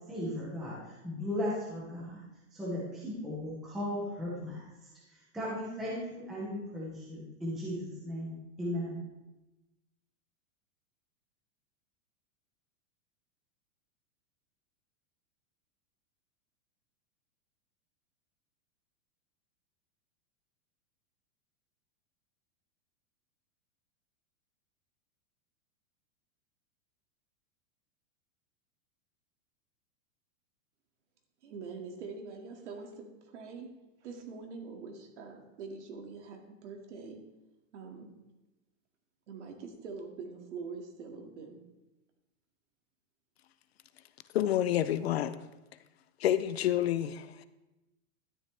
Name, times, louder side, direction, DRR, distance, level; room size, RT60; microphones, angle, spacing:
voice 1, 0.1-2.2 2.5-4.6 5.3-9.0, left 1 dB, ahead, -8 dB, 0.4 m, -36 dB
voice 2, 31.4-33.7 34.0-37.2 37.7-38.1 39.3-41.6, right 4 dB, 60° right, 2 dB, 2.1 m, -44 dB
voice 3, 44.3-45.4 46.2-47.4, left 11 dB, 55° left, 14 dB, 0.5 m, -28 dB
12.5 x 9.9 x 3.3 m, 1.0 s
supercardioid pair, 180°, 40 cm